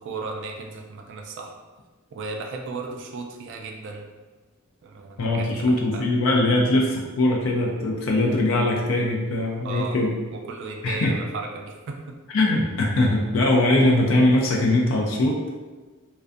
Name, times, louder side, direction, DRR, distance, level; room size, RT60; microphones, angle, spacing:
voice 1, 0.0-1.5 2.1-4.1 4.8-6.1 9.6-12.1, right 3 dB, 60° right, 2 dB, 0.3 m, -35 dB
voice 2, 5.2-10.1 10.8-11.1 12.3-15.6, left 1 dB, 65° left, -2 dB, 0.4 m, -21 dB
2.4 x 2.2 x 2.5 m, 1.3 s
head